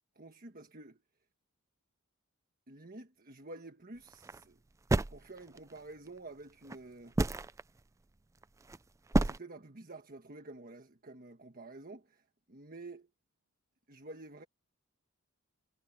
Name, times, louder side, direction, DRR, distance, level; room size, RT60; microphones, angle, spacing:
voice 1, 0.1-1.0 2.7-4.6 5.1-7.2 9.2-13.1 13.9-14.4, right 2 dB, 40° right, 1.4 m, -50 dB
sound 1, 4.1-4.4 4.9-5.8 6.7-6.8 7.1-7.6 8.4-8.8 9.1-9.4, right 2 dB, 15° right, 0.3 m, -29 dB
head